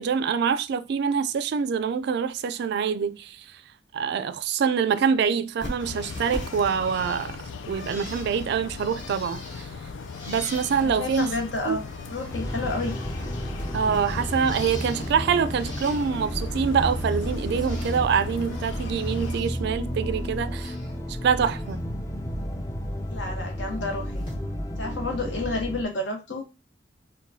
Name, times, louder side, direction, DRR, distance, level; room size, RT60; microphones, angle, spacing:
voice 1, 0.0-3.6 3.9-7.4 7.7-9.7 10.3-11.3 11.7-11.8 13.7-20.8 21.1-21.8, right 6 dB, 60° right, 0.3 m, -25 dB
Bird, 5.6-12.4 12.6-15.2 15.5-16.3 16.7-18.0 18.3-19.6 19.9-21.0 21.3-21.8 23.0-23.2 24.2-24.3, left 1 dB, 45° left, 2.0 m, -43 dB
sound 1, 5.8-19.4, left 4 dB, 85° left, 0.4 m, -38 dB
voice 2, 10.7-13.0 23.1-24.3 24.8-26.4, left 2 dB, 70° left, 1.0 m, -30 dB
sound 2, 12.3-25.8, equal, 15° left, 0.4 m, -32 dB
4.6 x 2.2 x 2.6 m
head